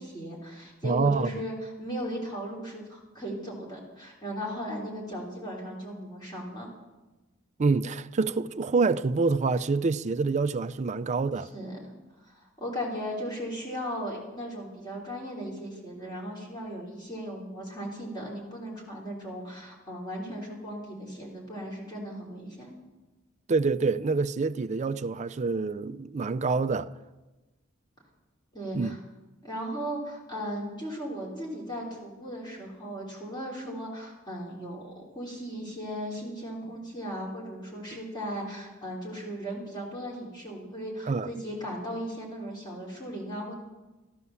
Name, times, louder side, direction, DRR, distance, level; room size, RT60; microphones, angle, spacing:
voice 1, 0.0-6.7 11.5-11.8 12.2-22.7 28.5-29.0 29.4-43.5, equal, 20° left, 3.5 m, -37 dB
voice 2, 0.8-1.3 7.6-11.5 23.5-26.9 28.7-28.9 41.1-41.3, right 4 dB, 35° right, 0.4 m, -26 dB
13.5 x 11.0 x 7.0 m
head